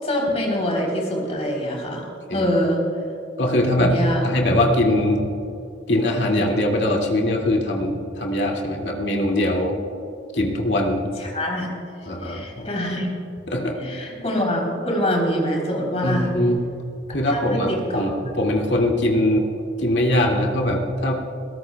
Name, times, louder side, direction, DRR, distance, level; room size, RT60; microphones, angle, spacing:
voice 1, 0.0-2.8 3.7-4.2 11.2-11.7 12.2-13.1 13.8-16.3 17.3-18.1, equal, 35° left, -1 dB, 3.6 m, -24 dB
voice 2, 3.4-3.9 4.2-5.3 5.9-9.8 10.3-11.1 12.1-12.7 13.5-13.7 16.0-16.6 17.1-19.5 19.8-21.2, left 1 dB, 75° left, -1 dB, 2.4 m, -21 dB
21.5 x 18.0 x 2.3 m, 2.7 s
head